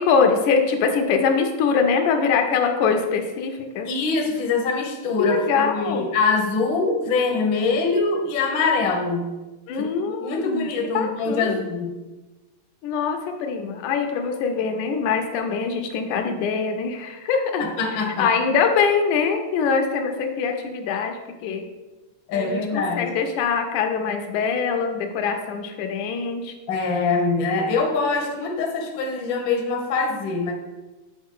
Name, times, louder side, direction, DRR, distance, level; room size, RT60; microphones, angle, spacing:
voice 1, 0.0-3.9 5.2-6.1 9.7-10.7 10.9-11.6 12.8-17.6 17.9-21.2 21.4-21.7 22.3-26.5, left 5 dB, 85° left, 4 dB, 2.2 m, -23 dB
voice 2, 3.8-9.3 9.8-11.9 17.6-18.3 22.3-23.1 26.7-30.5, left 4 dB, 65° left, 1 dB, 1.2 m, -24 dB
7.9 x 4.5 x 3.7 m, 1.1 s
omnidirectional pair, 3.5 m